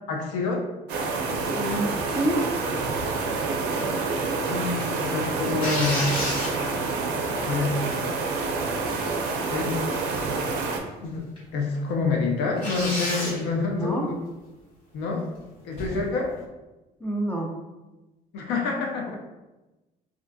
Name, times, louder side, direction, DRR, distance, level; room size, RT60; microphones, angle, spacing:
voice 1, 0.1-0.7 4.5-6.1 7.4-7.8 9.5-9.9 11.0-14.1 14.9-15.3 15.6-16.3 18.3-19.2, left 4 dB, 85° left, 1 dB, 0.5 m, -27 dB
sound 1, 0.9-10.8, right 3 dB, 85° right, 0.4 m, -28 dB
voice 2, 1.5-2.5 13.6-14.1 17.0-17.5, right 1 dB, 10° left, -1 dB, 0.3 m, -28 dB
sound 2, 3.0-3.2 3.7-4.6 5.6-6.9 7.5-7.6 8.0-8.3 8.7-9.6 10.1-10.4 10.7-10.8 11.4-11.5 11.7-11.8 12.6-13.4 15.7-16.1, left 1 dB, 35° left, 1.1 m, -32 dB
2.4 x 2.1 x 2.5 m, 1.1 s
cardioid pair, 110°, 17 cm